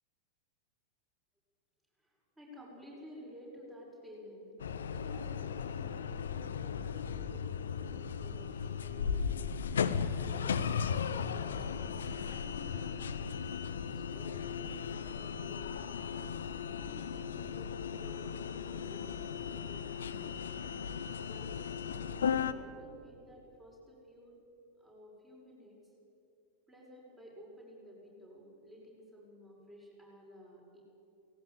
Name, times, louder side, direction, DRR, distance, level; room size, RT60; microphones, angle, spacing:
voice 1, 2.0-4.6 4.9-9.4 12.3-14.4 14.6-16.2 16.8-19.3 21.3-21.5 22.0-24.4 24.8-25.9 26.7-30.8, equal, 15° right, -3 dB, 6.4 m, -54 dB
sound 1, 4.6-22.5, left 7 dB, 65° left, 0.8 m, -36 dB
18.5 x 17.0 x 8.5 m, 2.9 s
figure-of-eight pair, 90°, 0 cm